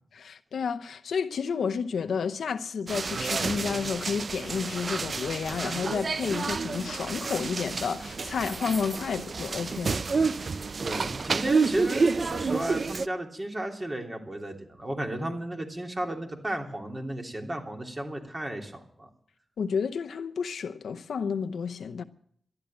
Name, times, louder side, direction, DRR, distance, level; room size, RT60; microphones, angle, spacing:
voice 1, 0.1-10.0 19.6-22.0, left 6 dB, 90° left, 0.7 m, -31 dB
sound 1, 2.9-13.1, right 4 dB, 55° right, 0.5 m, -29 dB
voice 2, 10.8-19.1, right 1 dB, 30° right, 3.2 m, -34 dB
13.0 x 11.0 x 8.9 m
cardioid pair, 60°, 0 cm